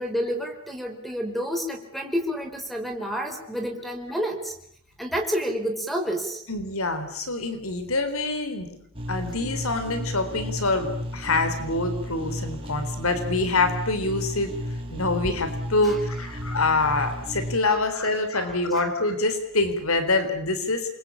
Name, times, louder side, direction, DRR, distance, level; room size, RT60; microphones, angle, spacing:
voice 1, 0.0-4.5 5.0-6.5 15.8-16.0 17.6-17.8 18.4-18.9, equal, ahead, 5 dB, 4.3 m, -29 dB
voice 2, 6.5-8.7 9.1-14.5 14.9-20.9, left 2 dB, 75° left, 9 dB, 3.9 m, -25 dB
sound 1, 8.9-17.6, equal, 25° right, 5.5 m, -33 dB
28.5 x 23.0 x 8.6 m, 0.69 s
head